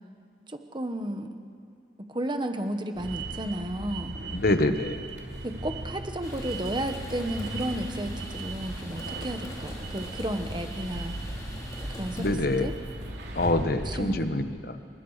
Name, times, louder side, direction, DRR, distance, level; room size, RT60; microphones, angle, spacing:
voice 1, 0.5-1.3 2.1-4.2 5.4-11.2 12.0-12.7 13.8-14.3, right 1 dB, 25° right, 7 dB, 1.3 m, -33 dB
sound 1, 2.9-14.2, right 2 dB, 75° right, 3.0 m, -37 dB
voice 2, 4.3-5.0 12.2-12.7 13.3-14.7, left 2 dB, 55° left, 9 dB, 1.1 m, -26 dB
sound 2, 6.2-12.3, equal, 20° left, 2.6 m, -43 dB
27.5 x 19.5 x 5.0 m, 2.3 s
head